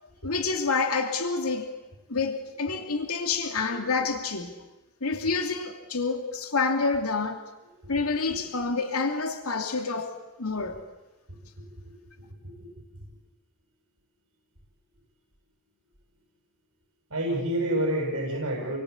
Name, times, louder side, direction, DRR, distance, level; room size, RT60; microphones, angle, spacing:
voice 1, 0.2-1.7 2.1-4.5 5.0-7.4 7.9-10.8, left 4 dB, 90° left, 2.8 m, -28 dB
voice 2, 17.1-18.8, right 1 dB, 70° right, 7.8 m, -28 dB
29.5 x 23.0 x 8.5 m
head